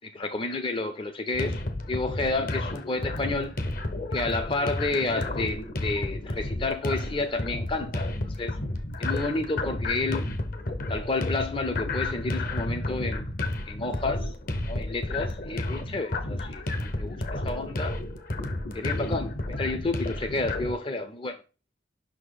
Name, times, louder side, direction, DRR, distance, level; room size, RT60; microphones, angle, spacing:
voice 1, 0.1-1.6 1.9-3.5 4.1-8.6 9.0-10.3 10.9-13.3 13.7-14.3 14.7-16.6 17.0-18.0 18.7-21.3, left 3 dB, 30° left, 0.5 m, -30 dB
sound 1, 1.3-20.7, left 2 dB, 50° left, 0.8 m, -32 dB
5.8 x 4.2 x 4.7 m
head